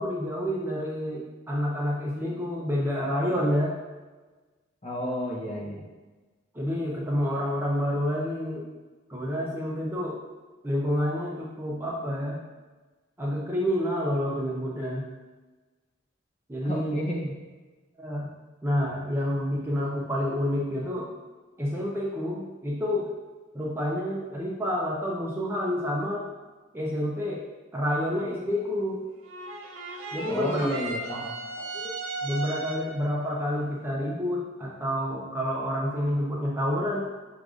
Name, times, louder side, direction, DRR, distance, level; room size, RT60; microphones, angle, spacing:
voice 1, 0.0-3.7 6.5-8.7 9.1-10.2 10.6-12.4 13.2-15.0 16.5-17.0 18.0-18.3 18.6-21.1 21.6-23.1 23.5-26.3 26.7-27.4 27.7-29.0 30.1-30.7 31.7-31.8 32.2-37.0, equal, 10° right, -4 dB, 0.5 m, -28 dB
voice 2, 4.8-5.9 16.6-17.3 30.3-31.7, equal, 35° left, -3 dB, 0.7 m, -32 dB
sound 1, 29.2-33.1, right 3 dB, 80° right, 0.5 m, -36 dB
6.2 x 2.5 x 2.4 m, 1.3 s
head